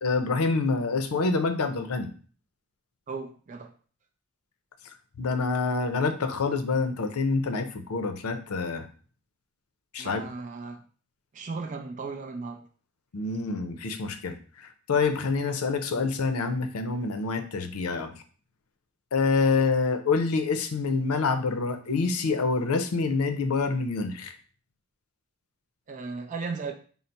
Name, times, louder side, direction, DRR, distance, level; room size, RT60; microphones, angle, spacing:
voice 1, 0.0-2.1 5.2-8.9 9.9-10.2 13.1-14.3 14.9-18.1 19.1-24.3, left 4 dB, 90° left, 0.5 m, -26 dB
voice 2, 3.1-3.7 10.0-10.8 11.3-12.6 25.9-26.7, right 4 dB, 35° right, 0.4 m, -36 dB
3.9 x 2.0 x 4.3 m
head